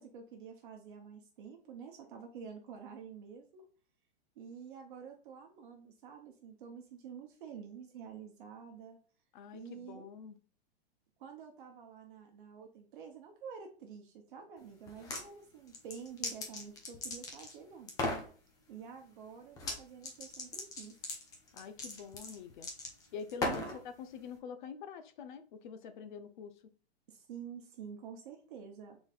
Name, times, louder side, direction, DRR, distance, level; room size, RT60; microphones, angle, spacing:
voice 1, 0.0-3.6 4.4-9.0 9.5-10.0 11.2-17.9 18.7-21.0 23.4-23.8 27.1-29.0, right 7 dB, 50° right, 0.9 m, -49 dB
voice 2, 9.3-10.4 21.5-22.7 23.1-26.7, left 6 dB, 50° left, 0.6 m, -46 dB
sound 1, 14.9-15.2 15.7-17.5 17.9-18.3 19.6-19.8 20.0-23.8, left 2 dB, 10° left, 0.5 m, -38 dB
5.1 x 4.0 x 2.4 m
hypercardioid pair, 155°, 32 cm